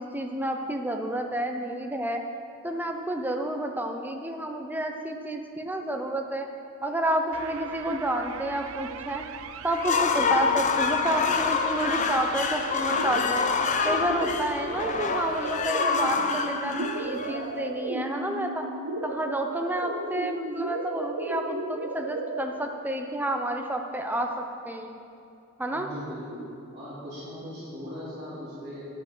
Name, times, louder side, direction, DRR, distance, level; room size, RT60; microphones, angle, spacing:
voice 1, 0.0-2.2 2.6-6.5 6.8-9.3 9.6-13.5 13.8-18.7 19.0-24.9 25.6-25.9, right 1 dB, 10° right, 3 dB, 0.7 m, -30 dB
sound 1, 7.3-15.7, right 8 dB, 70° right, 0.4 m, -42 dB
sound 2, 9.7-17.8, left 5 dB, 35° left, 0.5 m, -27 dB
sound 3, 12.9-22.4, right 2 dB, 90° right, 0.8 m, -34 dB
voice 2, 25.7-26.4 26.7-28.9, equal, 35° right, -12 dB, 2.9 m, -39 dB
10.0 x 6.0 x 7.7 m, 2.6 s
head